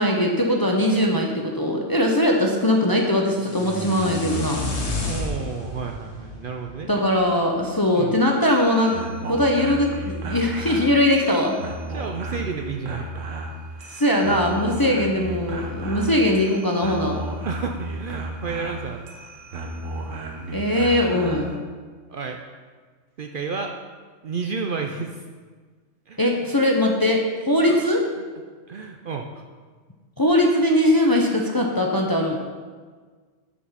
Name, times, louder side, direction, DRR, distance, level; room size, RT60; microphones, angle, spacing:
voice 1, 0.0-4.6 6.9-11.6 13.8-17.2 20.5-21.6 26.2-28.1 30.2-32.4, left 1 dB, 25° left, 1 dB, 0.6 m, -21 dB
sound 1, 3.3-7.4, left 2 dB, 65° left, 1.5 m, -30 dB
voice 2, 5.0-6.9 7.9-8.2 11.2-11.5 11.8-13.1 17.5-19.0 22.1-22.4 23.2-23.7 24.2-25.2 26.1-26.2 27.6-27.9 28.7-29.4, right 5 dB, 55° right, 3 dB, 0.6 m, -31 dB
sound 2, 8.3-21.6, right 1 dB, 85° right, 1.2 m, -34 dB
8.4 x 5.2 x 5.6 m, 1.5 s
omnidirectional pair, 1.3 m